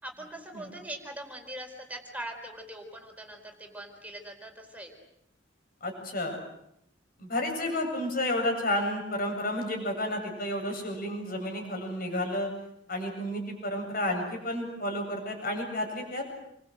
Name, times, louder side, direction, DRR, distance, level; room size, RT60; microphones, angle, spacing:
voice 1, 0.0-4.9, right 1 dB, 10° right, 2 dB, 4.5 m, -42 dB
voice 2, 5.8-6.4 7.2-12.5 12.9-16.2, left 1 dB, 50° left, 3 dB, 8.0 m, -31 dB
29.0 x 24.0 x 8.1 m, 0.78 s
head